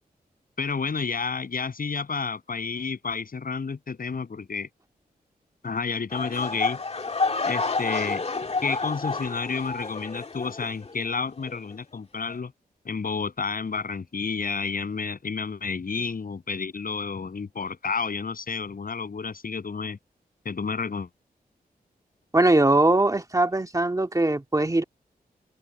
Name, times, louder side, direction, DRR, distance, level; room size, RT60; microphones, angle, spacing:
voice 1, 0.6-4.7 5.6-6.8 7.4-8.2 8.6-12.5 12.8-20.0 20.4-21.1, left 5 dB, 60° left, 7.9 m, -30 dB
sound 1, 6.1-11.1 11.4-11.7 12.3-12.4, left 3 dB, 40° left, 1.9 m, -29 dB
voice 2, 22.3-24.8, right 2 dB, 20° right, 2.1 m, -21 dB
open air
cardioid pair, 70°, 16 cm